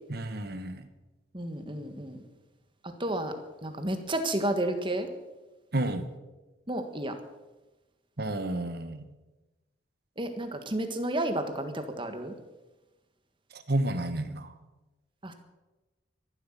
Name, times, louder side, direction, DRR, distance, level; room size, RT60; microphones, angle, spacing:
voice 1, 0.1-0.9 5.7-6.1 8.2-9.0 13.5-14.5, right 1 dB, 55° right, 8 dB, 1.4 m, -31 dB
voice 2, 1.3-2.2 3.0-3.3 3.6-5.1 6.7-7.1 10.2-12.4 15.2-15.3, right 1 dB, 25° right, 7 dB, 1.7 m, -31 dB
14.5 x 12.0 x 7.6 m, 1.1 s
head